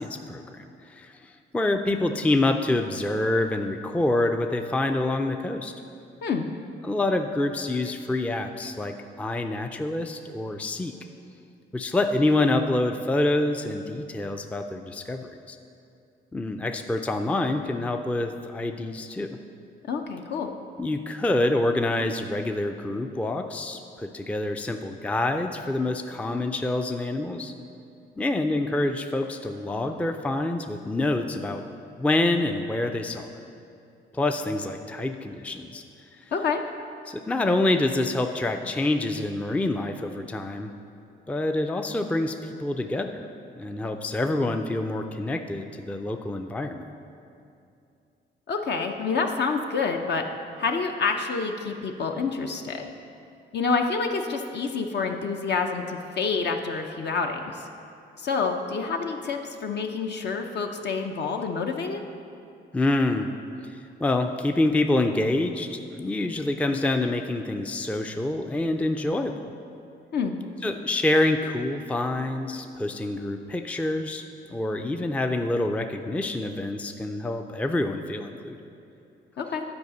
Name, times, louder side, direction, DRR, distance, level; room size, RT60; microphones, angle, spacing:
voice 1, 0.0-5.7 6.8-10.9 11.7-15.6 16.3-19.4 20.8-27.5 28.2-31.6 32.0-33.3 34.1-35.8 36.1-36.3 37.1-40.7 41.3-43.3 43.6-46.8 62.7-63.3 63.6-69.5 70.6-74.2 74.5-78.7, left 2 dB, 5° left, 6 dB, 0.4 m, -27 dB
voice 2, 19.8-20.5 36.3-36.6 48.5-50.2 50.6-52.9 53.5-57.7 58.2-62.0 70.1-70.4 79.4-79.6, left 5 dB, 60° left, 3 dB, 0.7 m, -28 dB
9.5 x 4.9 x 6.5 m, 2.6 s
cardioid pair, 90°, 20 cm